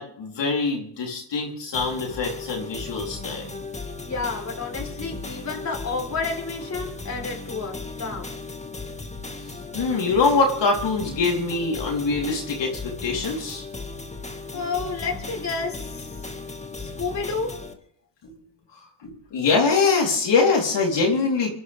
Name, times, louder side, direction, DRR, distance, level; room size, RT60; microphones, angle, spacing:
voice 1, 0.0-3.5 9.7-13.6 14.5-14.7 18.2-18.3 18.7-21.6, left 4 dB, 60° left, -1 dB, 4.0 m, -23 dB
sound 1, 1.7-17.7, left 3 dB, 15° left, 2.2 m, -36 dB
voice 2, 4.0-8.3 14.5-16.1 16.8-17.7, left 4 dB, 35° left, 2 dB, 4.1 m, -30 dB
29.0 x 11.0 x 3.6 m, 0.65 s
supercardioid pair, 75°, 49 cm